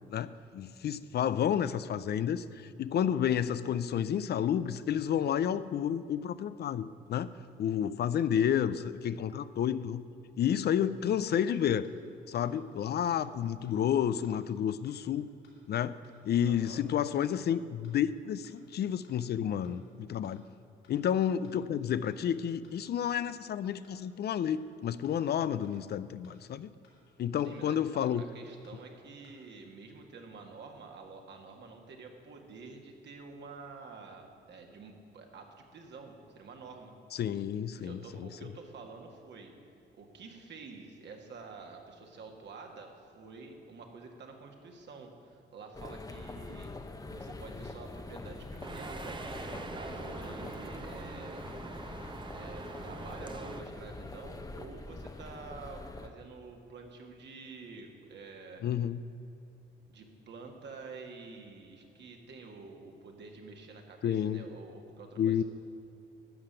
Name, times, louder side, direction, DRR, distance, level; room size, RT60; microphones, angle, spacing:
voice 1, 0.1-7.3 7.6-10.0 10.4-11.9 12.3-15.3 15.7-16.0 16.2-19.8 20.1-20.4 20.9-26.7 27.2-28.2 37.1-38.3 58.6-59.0 64.0-64.4 65.2-65.4, left 9 dB, 55° left, 15 dB, 0.5 m, -30 dB
sound 1, 11.8-11.9 12.4-12.5 13.0-13.1 13.6-13.7 14.2-14.3 14.8-14.9 15.4-15.5 16.0-16.1 16.6-16.7 17.2-17.3 17.8-17.9 18.4-18.5 19.0-19.1 19.6-19.7 20.2-20.3 20.8-20.9 21.4-21.5 22.0-22.1 22.6-22.7 23.2-23.3 23.8-23.9 24.4-24.5 25.0-25.1 25.6-25.7 26.2-26.3 26.8-26.9 27.4-27.5 28.0-28.1 28.6-28.7 29.2-29.3, left 6 dB, 80° left, 3.5 m, -65 dB
voice 2, 16.4-16.8 27.4-36.9 37.8-39.5 39.9-49.2 49.5-51.4 52.3-58.7 59.9-65.4, right 4 dB, 60° right, 2 dB, 1.9 m, -49 dB
sound 2, 45.7-56.1, left 2 dB, 20° left, 0.8 m, -44 dB
sound 3, 48.6-53.6, right 3 dB, 25° right, 0.8 m, -43 dB
12.5 x 5.8 x 8.8 m, 2.5 s
cardioid pair, 90°, 20 cm